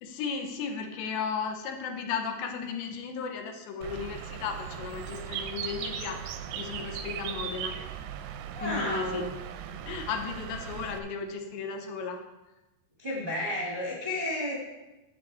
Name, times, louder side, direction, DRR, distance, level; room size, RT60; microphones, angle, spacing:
voice 1, 0.0-7.8 8.6-9.2 9.7-12.2, left 6 dB, 75° left, 4 dB, 2.9 m, -35 dB
Bird, 3.8-11.0, right 9 dB, 85° right, 2.9 m, -38 dB
voice 2, 8.5-9.2 13.0-14.6, left 1 dB, 60° right, -6 dB, 0.5 m, -32 dB
10.5 x 7.5 x 4.2 m, 1.0 s
omnidirectional pair, 5.2 m